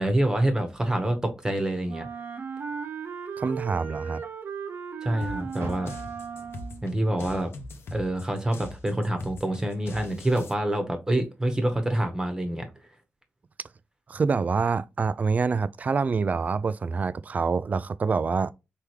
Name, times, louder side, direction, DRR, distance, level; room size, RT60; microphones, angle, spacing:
voice 1, 0.0-2.1 5.0-5.9 6.8-7.5 7.9-12.6, right 1 dB, 15° right, 1.1 m, -26 dB
Wind instrument woodwind instrument, 1.9-6.9, right 6 dB, 65° right, 0.8 m, -36 dB
voice 2, 3.4-4.2 14.1-18.5, right 5 dB, 40° right, 0.3 m, -26 dB
sound 1, 5.2-10.5, left 2 dB, 75° left, 0.8 m, -41 dB
Car, 5.5-8.8 9.2-10.6 11.1-11.2 11.8-11.9, right 2 dB, 90° right, 1.2 m, -46 dB
4.5 x 3.5 x 3.2 m
wide cardioid pair, 110°, 4 cm